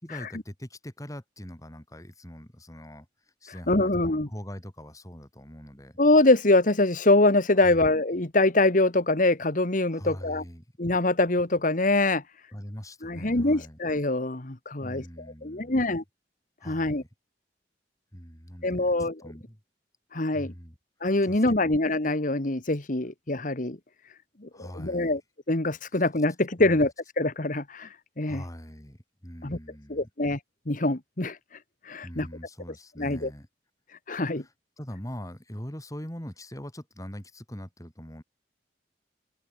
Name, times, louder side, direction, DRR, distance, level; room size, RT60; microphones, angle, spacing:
voice 1, 0.0-3.1 3.4-6.0 7.6-7.9 9.9-10.7 12.5-13.8 14.8-15.7 16.6-17.1 18.1-19.6 20.3-20.8 21.2-21.7 24.5-25.2 26.6-26.9 28.2-30.1 32.0-33.5 34.3-38.2, equal, 20° left, 3.8 m, -42 dB
voice 2, 3.7-4.3 6.0-10.4 10.8-12.2 13.0-15.0 15.4-16.0 16.6-17.0 18.6-19.2 20.1-20.5 21.0-23.8 24.4-25.2 25.5-27.9 28.2-28.4 29.4-29.6 29.9-30.4 30.7-31.4 31.9-32.3 33.0-33.3 34.1-34.4, left 2 dB, 45° left, 1.7 m, -24 dB
open air
head